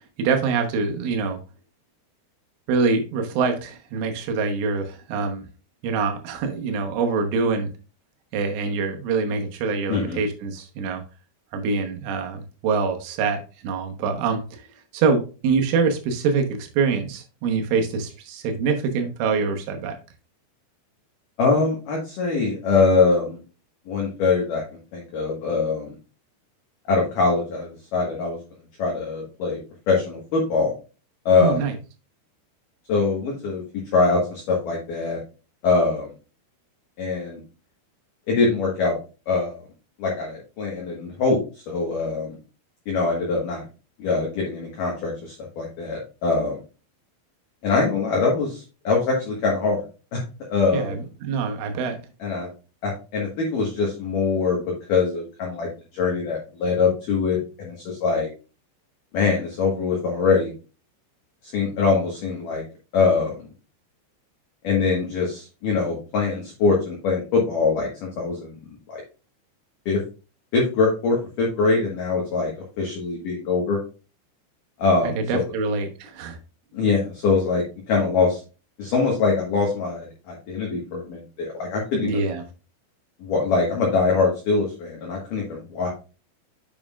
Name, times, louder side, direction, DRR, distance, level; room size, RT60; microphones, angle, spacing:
voice 1, 0.2-1.4 2.7-5.5 5.8-7.7 8.3-11.0 11.5-14.7 14.9-20.0 31.4-31.8 50.7-52.0 75.0-76.4 82.0-82.4, right 5 dB, 85° right, 4 dB, 3.6 m, -25 dB
voice 2, 21.4-23.4 23.9-24.6 24.9-25.9 26.9-28.4 28.8-29.6 29.9-30.7 31.3-31.7 32.9-33.6 33.9-35.2 35.6-36.1 37.0-37.4 38.3-39.0 39.3-39.6 40.0-42.4 42.9-43.6 44.0-46.6 47.6-49.8 50.1-50.2 50.5-50.9 52.2-52.5 52.8-58.3 59.1-60.5 61.4-62.6 62.9-63.5 64.6-68.5 68.9-69.0 69.9-70.0 70.5-73.8 74.8-75.4 76.7-78.4 78.8-82.2 83.2-85.9, left 4 dB, 65° left, -2 dB, 2.3 m, -23 dB
7.7 x 7.3 x 2.4 m, 0.33 s
omnidirectional pair, 5.5 m